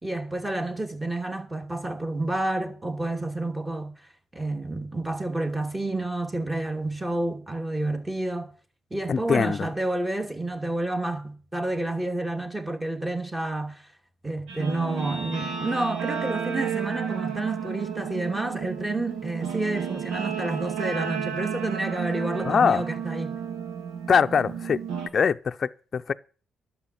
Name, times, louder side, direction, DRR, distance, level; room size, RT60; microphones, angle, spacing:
voice 1, 0.0-3.9 4.3-8.5 8.9-13.8 14.2-23.4, right 2 dB, 15° right, 2.7 m, -29 dB
voice 2, 9.1-9.7 22.4-22.8 24.1-24.8 25.1-26.1, left 6 dB, 45° left, 0.6 m, -22 dB
Guitar, 14.5-25.1, right 7 dB, 90° right, 2.1 m, -32 dB
12.0 x 7.2 x 9.2 m
cardioid pair, 90°, 0 cm